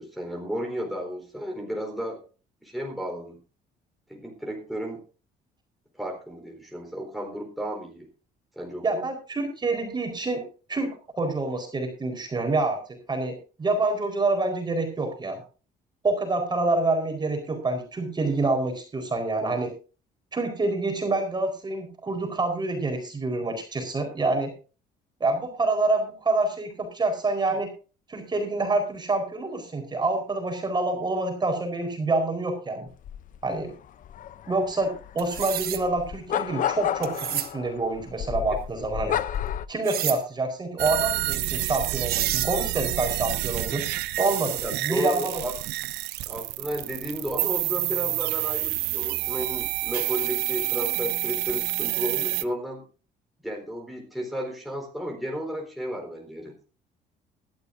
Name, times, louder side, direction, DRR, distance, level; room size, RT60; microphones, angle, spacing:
voice 1, 0.0-2.2 2.6-3.4 4.1-5.0 6.0-8.1 8.6-9.1 44.6-45.5 46.3-52.8 53.4-56.5, equal, ahead, 0 dB, 4.3 m, -33 dB
voice 2, 8.8-15.4 16.0-19.7 20.3-24.5 25.2-27.7 28.1-32.9 33.4-33.7 34.5-39.2 39.7-43.8 44.2-45.4, right 2 dB, 25° right, 4 dB, 4.4 m, -27 dB
sound 1, 33.0-39.7, left 10 dB, 50° left, 0.7 m, -32 dB
sound 2, 35.2-35.8 37.0-37.5 39.8-40.2 41.7-41.8 42.1-42.5, right 12 dB, 65° right, 1.3 m, -29 dB
sound 3, 40.8-52.4, right 17 dB, 85° right, 0.7 m, -28 dB
20.0 x 12.0 x 2.6 m, 0.35 s
cardioid pair, 110°, 17 cm